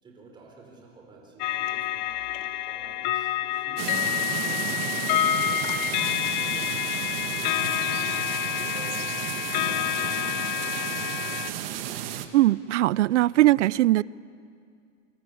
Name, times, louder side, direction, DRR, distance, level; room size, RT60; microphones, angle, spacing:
voice 1, 0.0-9.1 9.5-11.4, right 3 dB, 10° right, -1 dB, 4.4 m, -49 dB
sound 1, 1.4-11.5, left 13 dB, 40° left, 0.7 m, -28 dB
sound 2, 3.8-12.3, right 11 dB, 50° right, 1.8 m, -33 dB
voice 2, 12.3-14.0, right 16 dB, 70° right, 23 dB, 0.6 m, -20 dB
26.5 x 26.0 x 8.5 m, 2.3 s
supercardioid pair, 175°, 38 cm